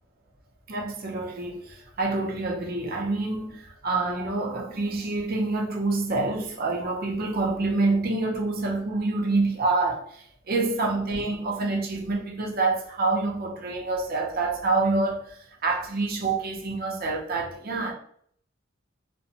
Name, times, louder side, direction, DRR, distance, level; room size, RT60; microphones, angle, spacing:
voice 1, 0.7-15.2 15.6-17.9, right 3 dB, 50° right, 0.6 m, -27 dB
2.5 x 2.1 x 2.8 m
head